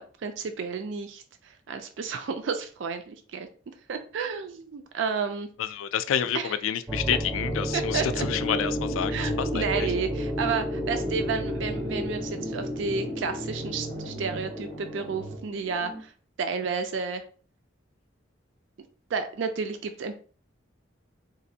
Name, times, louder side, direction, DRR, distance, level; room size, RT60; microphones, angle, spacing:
voice 1, 0.0-3.5 3.9-5.5 6.3-6.5 7.7-8.2 9.1-16.1 16.4-17.2 19.1-20.2, right 5 dB, 70° right, 7 dB, 0.4 m, -31 dB
voice 2, 5.6-9.9, left 9 dB, 85° left, 12 dB, 0.3 m, -29 dB
sound 1, 6.9-16.0, equal, 10° right, 0.4 m, -32 dB
sound 2, 7.9-15.4, right 2 dB, 85° right, 0.8 m, -40 dB
3.9 x 2.5 x 2.7 m, 0.41 s
head